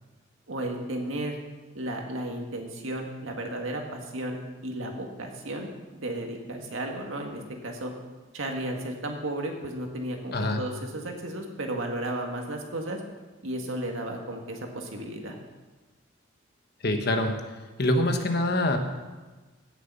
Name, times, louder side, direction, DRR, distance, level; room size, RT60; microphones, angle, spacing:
voice 1, 0.5-1.4 1.7-5.7 5.9-7.9 8.3-13.0 13.4-15.4, right 1 dB, 85° right, 2 dB, 1.9 m, -34 dB
voice 2, 10.3-10.6 16.8-17.3 17.8-18.8, left 1 dB, 55° left, 5 dB, 1.3 m, -24 dB
16.0 x 6.9 x 5.5 m, 1.2 s
head